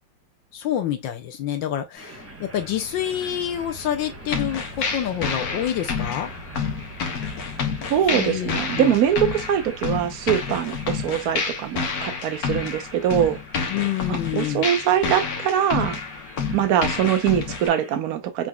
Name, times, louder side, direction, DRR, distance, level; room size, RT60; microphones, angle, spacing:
voice 1, 0.5-6.3 8.1-8.9 13.7-14.7, left 10 dB, 70° left, 1.2 m, -27 dB
sound 1, 2.0-18.0, right 1 dB, 15° right, 0.5 m, -43 dB
sound 2, 4.3-17.7, left 5 dB, 55° left, 1.3 m, -29 dB
voice 2, 7.9-13.4 14.1-16.0 16.5-18.5, right 10 dB, 60° right, 1.0 m, -23 dB
6.0 x 3.8 x 2.2 m
omnidirectional pair, 2.4 m